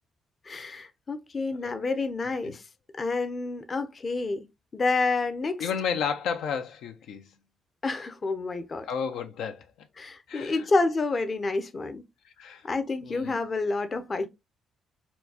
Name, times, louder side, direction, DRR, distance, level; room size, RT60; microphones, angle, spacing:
voice 1, 0.5-2.6 3.0-4.5 4.7-5.7 7.8-8.9 10.0-12.0 12.6-14.3, left 3 dB, 35° left, 0.6 m, -29 dB
voice 2, 5.6-7.2 8.9-9.7 10.3-10.6 12.4-12.6 13.0-13.4, left 7 dB, 85° left, 0.5 m, -32 dB
4.4 x 2.3 x 2.7 m
cardioid pair, 90°, 0 cm